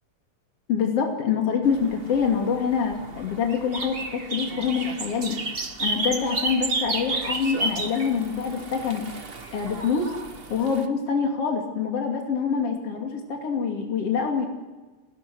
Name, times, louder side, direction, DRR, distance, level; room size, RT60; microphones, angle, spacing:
voice 1, 0.7-4.0 4.3-5.4 5.8-9.1 9.5-10.1 10.5-14.5, left 6 dB, 50° left, 1 dB, 3.6 m, -25 dB
sound 1, 1.6-10.8, right 3 dB, 50° right, 0.6 m, -32 dB
29.5 x 19.5 x 6.3 m, 1.2 s
omnidirectional pair, 3.5 m